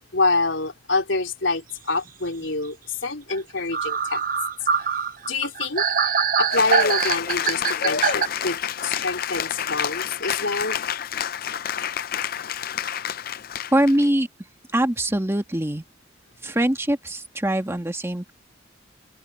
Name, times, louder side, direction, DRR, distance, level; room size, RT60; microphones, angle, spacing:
voice 1, 0.1-2.8 3.0-4.2 5.3-5.8 6.4-10.8, left 3 dB, 80° left, 3.6 m, -26 dB
sound 1, 3.3-3.4 3.7-8.3, right 6 dB, 45° right, 0.9 m, -23 dB
Cheering / Applause, 6.5-14.0, left 8 dB, 50° left, 0.5 m, -28 dB
voice 2, 13.7-14.3 14.7-15.8 16.4-18.3, right 1 dB, 15° right, 1.7 m, -22 dB
head